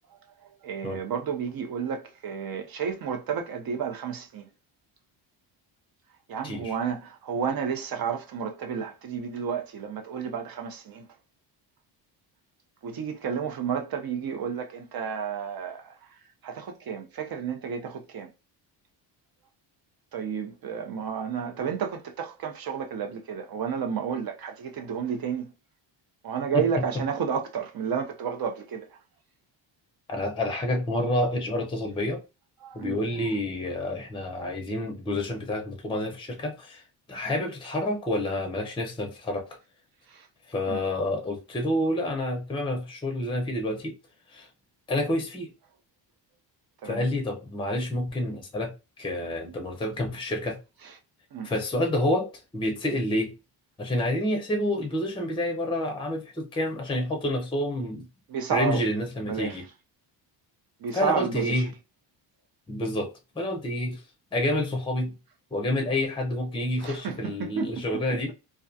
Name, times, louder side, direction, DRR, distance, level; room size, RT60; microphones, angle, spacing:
voice 1, 0.6-4.5 6.3-11.0 12.8-16.0 16.4-18.3 20.1-25.5 26.2-28.9 32.6-33.0 40.1-40.3 40.7-40.8 46.8-47.1 51.3-51.5 58.3-58.8 59.3-59.6 60.8-61.6 66.8-68.0, right 7 dB, 50° right, 0.6 m, -31 dB
voice 2, 6.4-6.8 26.5-26.7 30.1-32.2 32.7-36.8 37.1-39.5 40.5-43.9 44.3-44.5 44.9-45.5 46.8-50.6 51.4-53.3 53.8-58.1 58.5-59.6 60.9-61.7 62.7-64.0 64.3-65.1 65.5-68.3, left 1 dB, 10° left, 0.6 m, -28 dB
2.3 x 2.3 x 2.6 m
cardioid pair, 95°, 48 cm